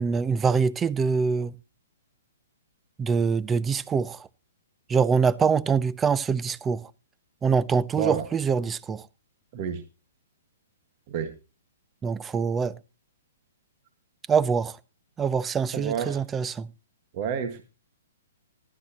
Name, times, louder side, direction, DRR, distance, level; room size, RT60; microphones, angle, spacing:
voice 1, 0.0-1.5 3.0-4.3 4.9-6.9 7.4-9.1 12.0-12.7 14.3-14.8 15.2-16.7, right 5 dB, 15° right, 0.5 m, -24 dB
voice 2, 15.7-16.2 17.1-17.6, right 7 dB, 40° right, 1.6 m, -29 dB
14.5 x 12.0 x 2.9 m
hypercardioid pair, 140°, 0 cm